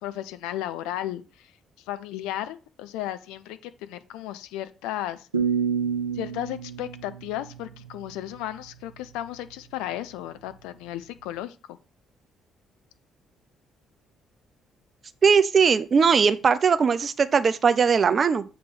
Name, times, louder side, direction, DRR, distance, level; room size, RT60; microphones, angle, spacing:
voice 1, 0.0-1.5 1.9-5.3 6.1-11.8, left 13 dB, 70° left, 11 dB, 0.5 m, -34 dB
sound 1, 5.3-8.3, right 6 dB, 85° right, 0.5 m, -29 dB
voice 2, 15.2-18.4, right 6 dB, 40° right, 12 dB, 0.6 m, -20 dB
7.6 x 3.0 x 5.6 m, 0.33 s
figure-of-eight pair, 45°, 0 cm